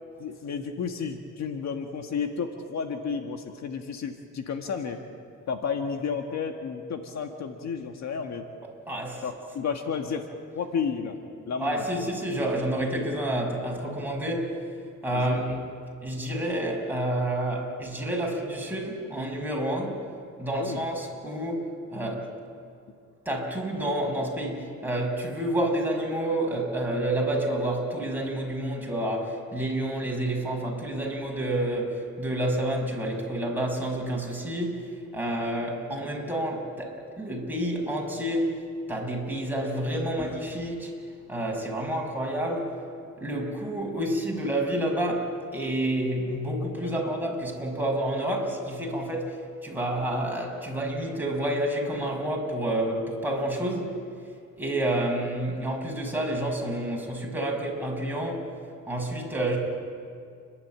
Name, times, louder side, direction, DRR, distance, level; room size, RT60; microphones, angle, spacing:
voice 1, 0.2-5.0 5.5-8.4 9.2-10.2 10.5-11.2 11.5-11.9 15.1-15.4 20.5-20.8 46.8-47.1, left 6 dB, 60° left, 4 dB, 1.7 m, -32 dB
voice 2, 8.9-9.2 11.6-14.6 15.0-15.6 16.0-20.1 20.4-22.3 23.3-38.5 38.9-40.9 41.3-42.7 43.2-54.0 54.6-58.5 58.9-59.6, right 1 dB, 5° right, -1 dB, 5.9 m, -29 dB
29.5 x 12.0 x 8.8 m, 2.3 s
cardioid pair, 90°, 30 cm